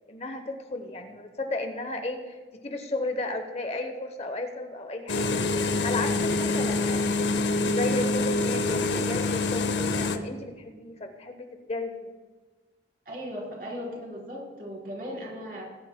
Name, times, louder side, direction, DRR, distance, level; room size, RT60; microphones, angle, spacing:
voice 1, 0.1-2.4 2.6-5.4 5.8-12.1, left 2 dB, 35° left, 6 dB, 0.8 m, -34 dB
sound 1, 5.1-10.2, left 3 dB, 65° left, 0.6 m, -26 dB
voice 2, 13.1-15.7, equal, 50° right, -3 dB, 3.8 m, -37 dB
19.5 x 11.0 x 2.2 m, 1.4 s
head